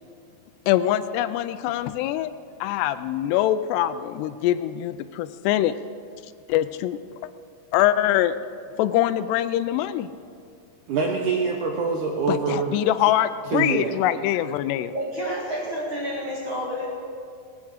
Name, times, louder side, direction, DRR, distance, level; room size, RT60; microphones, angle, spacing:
voice 1, 0.7-2.3 2.6-5.7 6.5-7.0 7.7-8.3 8.8-10.1 12.3-14.9, left 12 dB, 85° left, 13 dB, 2.6 m, -23 dB
voice 2, 10.9-12.7 13.4-14.0, right 4 dB, 70° right, 1 dB, 1.9 m, -25 dB
voice 3, 14.9-16.9, equal, 45° right, -3 dB, 1.7 m, -29 dB
19.0 x 9.6 x 6.5 m, 2.3 s
omnidirectional pair, 4.9 m